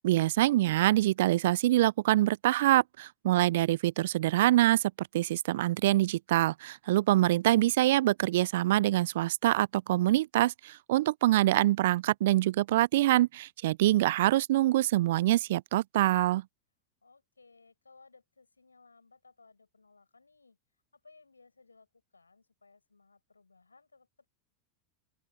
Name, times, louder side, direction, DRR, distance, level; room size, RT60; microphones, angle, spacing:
voice 1, 0.0-16.4, right 15 dB, 60° right, 0.4 m, -25 dB
voice 2, 17.0-20.6 20.9-24.3, left 4 dB, 85° left, 6.3 m, -61 dB
open air
figure-of-eight pair, 85°, 0 cm